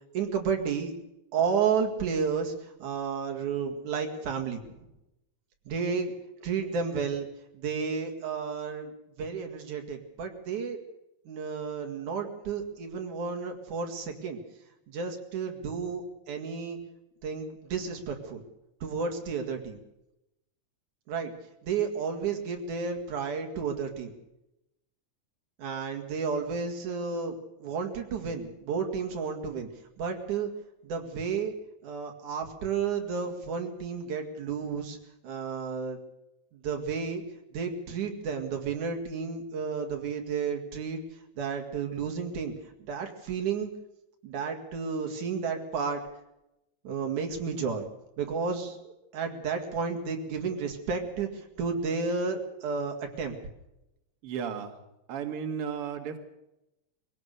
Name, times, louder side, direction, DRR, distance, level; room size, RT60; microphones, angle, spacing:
voice 1, 0.1-0.9 1.3-4.6 5.7-6.1 6.4-7.3 7.5-8.9 9.2-10.8 11.3-14.4 14.9-16.8 17.2-18.4 18.8-19.8 21.1-21.3 21.6-24.1 25.6-27.4 27.6-29.7 30.0-30.5 30.8-31.5 31.8-35.0 35.2-36.0 36.6-37.2 37.5-41.0 41.4-42.5 42.9-43.7 44.2-46.0 46.9-47.9 48.2-53.3, right 5 dB, 85° right, 3 dB, 3.5 m, -32 dB
voice 2, 54.2-54.8 55.1-56.2, right 7 dB, 50° right, 5 dB, 2.5 m, -34 dB
23.0 x 17.0 x 6.7 m, 0.90 s
omnidirectional pair, 3.4 m